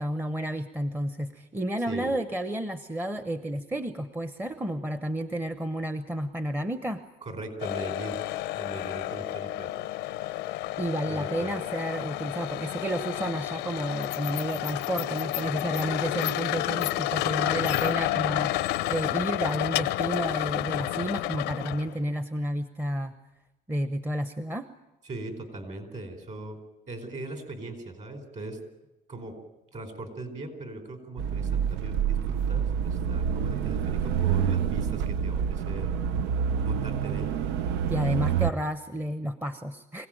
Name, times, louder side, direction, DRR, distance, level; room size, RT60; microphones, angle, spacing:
voice 1, 0.0-7.0 10.8-23.1 23.7-24.7 37.9-40.1, right 1 dB, 10° right, 10 dB, 0.9 m, -31 dB
voice 2, 7.2-8.2 8.6-9.8 11.0-11.6 25.0-26.6 26.9-28.6 29.1-29.4 29.7-35.9 36.6-37.3, right 2 dB, 45° right, 7 dB, 4.6 m, -39 dB
sound 1, 7.6-21.9, left 15 dB, 90° left, 0.7 m, -30 dB
sound 2, 31.2-38.5, right 8 dB, 90° right, 0.7 m, -27 dB
24.5 x 17.0 x 9.1 m, 1.0 s
cardioid pair, 110°, 17 cm